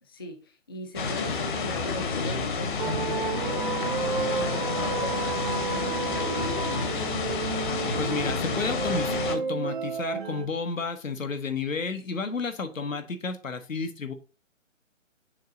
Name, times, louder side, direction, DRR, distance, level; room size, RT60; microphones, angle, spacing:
voice 1, 0.0-7.1, left 1 dB, 20° left, 4 dB, 0.5 m, -39 dB
sound 1, 1.0-9.4, left 4 dB, 40° left, 1.1 m, -30 dB
sound 2, 2.8-10.5, right 4 dB, 45° right, 0.5 m, -31 dB
voice 2, 8.0-14.1, left 4 dB, 80° left, 7 dB, 1.2 m, -32 dB
6.5 x 4.0 x 3.6 m, 0.37 s
figure-of-eight pair, 145°, 39 cm